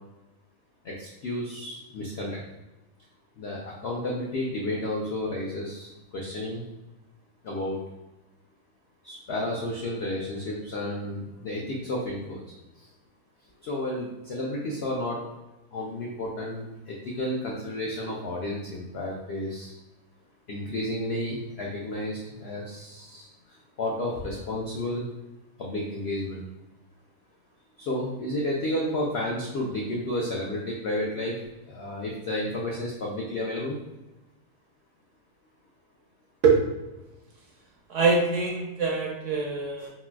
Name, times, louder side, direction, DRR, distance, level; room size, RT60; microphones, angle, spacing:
voice 1, 0.8-2.4 3.4-6.6 7.4-7.8 9.0-12.4 13.6-15.2 15.7-19.7 20.5-23.3 23.8-25.1 25.6-26.4 27.8-31.4 31.7-33.8, left 1 dB, 80° left, -3 dB, 0.5 m, -31 dB
voice 2, 37.9-39.9, right 4 dB, 65° right, -1 dB, 0.8 m, -23 dB
4.0 x 2.2 x 2.3 m, 0.99 s
omnidirectional pair, 1.7 m